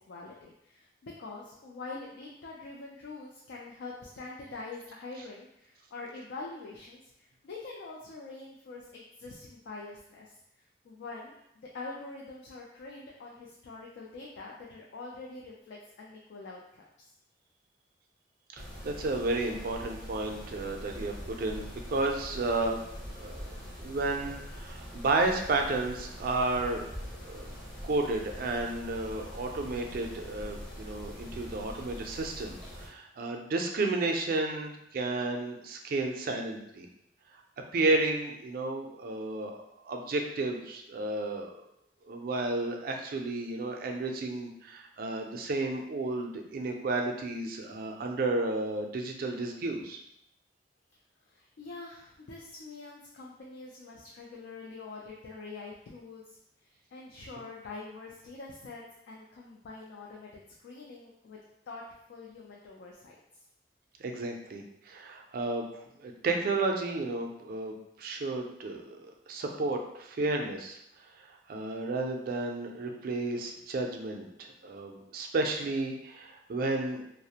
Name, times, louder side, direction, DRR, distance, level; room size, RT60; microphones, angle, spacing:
voice 1, 0.1-10.3 10.8-17.1 51.3-61.4 61.7-61.8 62.1-63.2, left 3 dB, 80° left, -2 dB, 0.4 m, -45 dB
Mechanisms, 18.6-32.9, equal, 5° left, 0.5 m, -43 dB
voice 2, 18.8-22.8 23.2-26.9 27.2-27.5 27.8-36.9 37.7-41.6 42.1-50.0 64.0-70.8 71.2-77.0, right 2 dB, 55° right, 3 dB, 0.4 m, -32 dB
2.4 x 2.0 x 2.7 m, 0.77 s
head